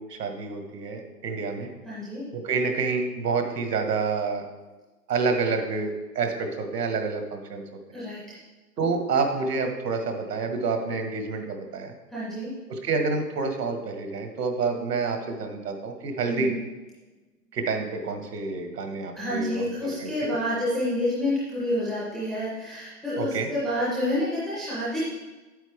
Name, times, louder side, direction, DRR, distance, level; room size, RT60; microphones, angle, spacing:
voice 1, 0.0-1.7 2.3-4.4 5.1-7.6 8.8-11.9 12.7-16.6 17.5-20.4 23.2-23.5, right 4 dB, 80° right, 5 dB, 1.9 m, -28 dB
voice 2, 1.8-2.2 7.9-8.2 12.1-12.5 16.3-16.6 19.1-25.0, left 1 dB, ahead, -11 dB, 0.4 m, -28 dB
9.1 x 7.9 x 3.6 m, 1.2 s
hypercardioid pair, 155°, 47 cm